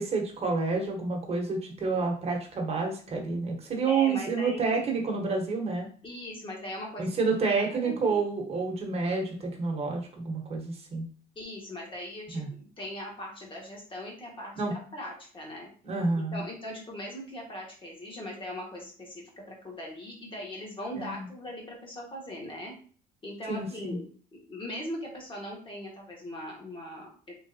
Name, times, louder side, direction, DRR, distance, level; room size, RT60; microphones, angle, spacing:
voice 1, 0.0-5.9 7.0-11.1 12.3-12.5 14.5-14.7 15.8-16.4 21.0-21.3 23.5-24.0, right 4 dB, 35° right, 0 dB, 1.2 m, -29 dB
voice 2, 3.8-4.8 6.0-7.1 7.4-8.2 11.3-15.7 16.3-22.7 23.2-24.0 24.3-27.4, left 1 dB, 30° left, -1 dB, 1.6 m, -40 dB
3.9 x 3.2 x 2.8 m, 0.43 s
cardioid pair, 110°, 17 cm